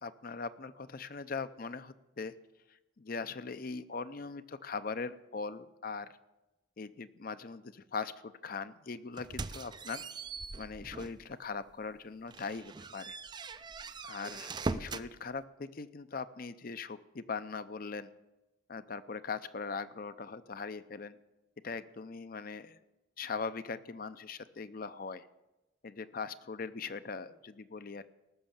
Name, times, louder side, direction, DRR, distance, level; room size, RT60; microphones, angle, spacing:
voice 1, 0.0-2.3 3.0-6.1 6.8-10.0 10.6-13.2 14.0-18.1 18.7-21.1 21.6-22.8 23.2-25.3 25.8-28.0, left 4 dB, 45° left, 13 dB, 0.6 m, -40 dB
sound 1, 9.2-11.3 11.7-11.8 12.3-15.1, right 3 dB, 20° right, 0.4 m, -41 dB
18.0 x 6.6 x 7.2 m, 1.0 s
head